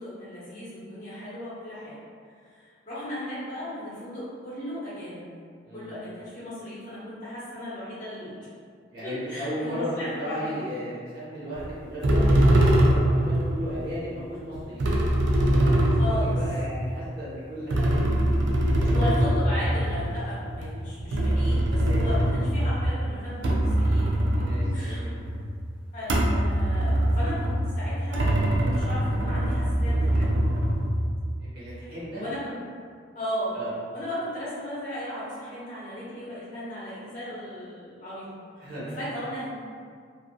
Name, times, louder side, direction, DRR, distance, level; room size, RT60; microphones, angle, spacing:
voice 1, 0.0-2.0 2.4-5.3 5.7-8.5 9.0-10.6 15.9-16.4 18.9-24.1 24.4-25.1 25.9-30.5 32.2-32.6 33.1-33.6 33.9-38.4 38.8-39.5, left 1 dB, 45° left, -11 dB, 1.0 m, -36 dB
voice 2, 5.6-5.9 8.9-15.1 15.5-19.2 20.0-20.2 21.8-22.1 24.4-25.1 31.4-32.2 33.5-33.7 38.6-39.0, equal, 55° right, -10 dB, 1.0 m, -35 dB
sound 1, 11.6-11.7 12.0-13.7 14.5-17.1 17.7-22.9 23.3-25.5 26.0-31.1, right 1 dB, 75° right, 0.4 m, -23 dB
2.5 x 2.3 x 2.2 m, 2.1 s
head